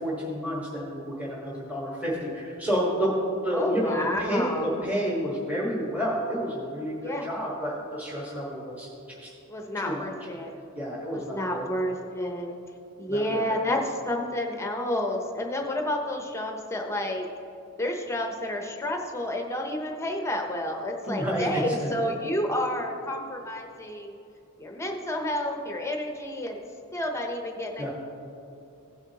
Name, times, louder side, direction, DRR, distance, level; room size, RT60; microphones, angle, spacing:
voice 1, 0.0-9.3 9.8-10.1 10.7-11.6 13.1-13.7 21.1-21.9 27.8-27.9, equal, 5° right, -5 dB, 1.4 m, -30 dB
voice 2, 3.5-4.9 7.0-7.3 9.5-10.5 11.1-12.5 13.0-17.3 17.8-24.2 24.6-26.6 26.9-27.9, left 1 dB, 10° left, 2 dB, 0.7 m, -30 dB
16.0 x 6.5 x 2.9 m, 2.7 s
head